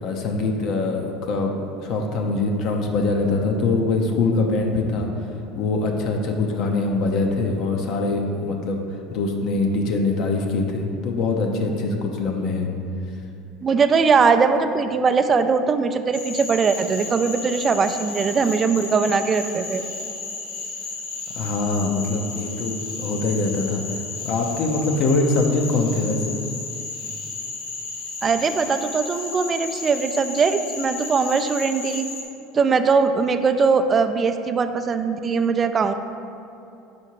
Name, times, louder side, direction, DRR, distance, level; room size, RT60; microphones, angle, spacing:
voice 1, 0.0-5.1 5.6-8.8 9.1-12.7 21.4-23.8 24.2-26.3, left 3 dB, 60° left, 2 dB, 0.7 m, -23 dB
voice 2, 13.6-19.8 28.2-32.1 32.5-35.9, right 5 dB, 30° right, 9 dB, 0.3 m, -20 dB
Cricket / Frog, 16.1-32.2, left 4 dB, 85° left, 0.9 m, -33 dB
4.9 x 4.3 x 4.7 m, 2.7 s
supercardioid pair, 100°, 0 cm